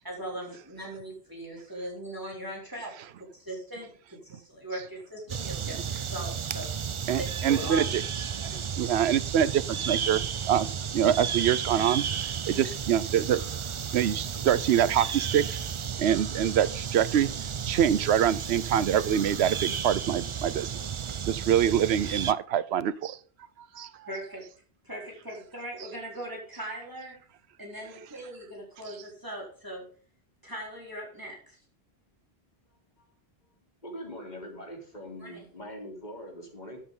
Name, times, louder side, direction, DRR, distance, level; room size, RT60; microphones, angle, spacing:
voice 1, 0.0-6.7 7.2-8.2 8.5-8.6 9.1-9.2 12.5-12.7 24.1-24.5 24.8-27.2 27.6-29.9 30.4-31.6 35.2-35.4, right 1 dB, 20° right, -2 dB, 4.2 m, -40 dB
sound 1, 5.3-22.3, right 7 dB, 45° right, 0.4 m, -33 dB
voice 2, 7.1-7.8 8.4-10.7 10.9-12.0 12.5-13.4 13.9-15.6 16.0-17.3 17.7-20.7 21.3-23.2 23.8-23.9, right 9 dB, 90° right, 17 dB, 0.9 m, -25 dB
voice 3, 33.8-36.8, equal, 45° left, 1 dB, 3.7 m, -42 dB
13.0 x 8.4 x 3.8 m, 0.42 s
omnidirectional pair, 1.0 m